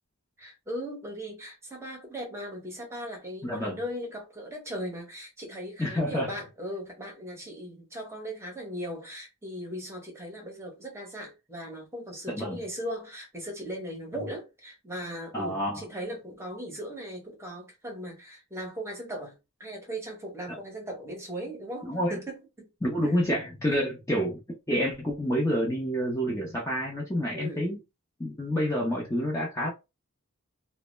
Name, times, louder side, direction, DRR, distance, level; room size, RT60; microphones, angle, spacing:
voice 1, 0.4-22.7 23.0-23.1 27.3-27.7, equal, 10° right, 0.8 m, -38 dB
voice 2, 3.4-3.8 5.8-6.3 12.3-12.6 14.1-14.2 15.3-15.8 20.5-20.6 21.9-22.2 22.8-24.4 24.7-27.8 28.2-29.7, equal, 15° left, 0.5 m, -28 dB
2.1 x 2.0 x 3.0 m
head